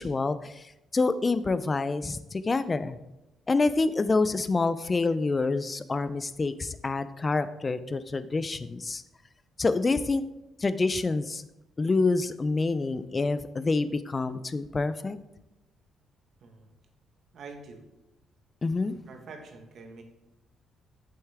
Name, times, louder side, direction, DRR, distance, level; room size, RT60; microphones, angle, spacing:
voice 1, 0.0-3.0 3.5-9.0 9.6-10.2 10.6-11.4 11.8-15.2 18.6-19.0, left 3 dB, 30° left, 13 dB, 0.5 m, -27 dB
voice 2, 17.3-17.8 19.1-20.0, right 4 dB, 65° right, 3 dB, 1.6 m, -45 dB
8.2 x 7.7 x 3.6 m, 0.93 s
cardioid pair, 90°, 0 cm